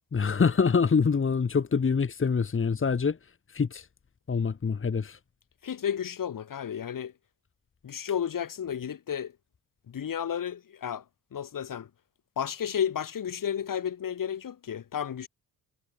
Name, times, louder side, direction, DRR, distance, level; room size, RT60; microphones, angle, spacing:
voice 1, 0.1-3.2 3.5-3.9 4.3-5.2, left 5 dB, 30° left, 2.9 m, -25 dB
voice 2, 5.6-7.1 7.8-9.3 9.9-11.0 11.3-11.9 12.4-15.3, left 8 dB, 55° left, 5.7 m, -32 dB
cardioid pair, 125°, 40 cm